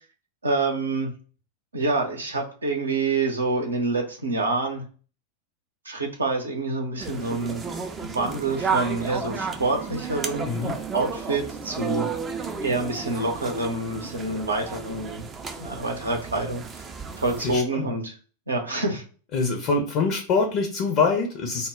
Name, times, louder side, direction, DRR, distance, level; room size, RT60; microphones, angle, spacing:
voice 1, 0.4-1.1 1.7-4.8 5.9-7.7 8.0-10.5 10.9-12.1 12.6-15.3 15.6-16.6 17.2-18.1 18.5-19.0, right 3 dB, 75° right, 2 dB, 0.6 m, -27 dB
sound 1, 7.0-17.6, right 5 dB, 20° right, 0.3 m, -33 dB
voice 2, 10.5-10.8 17.4-17.9 19.3-21.7, left 4 dB, 40° left, 2 dB, 0.5 m, -24 dB
2.1 x 2.0 x 3.4 m, 0.40 s
figure-of-eight pair, 90°, 0 cm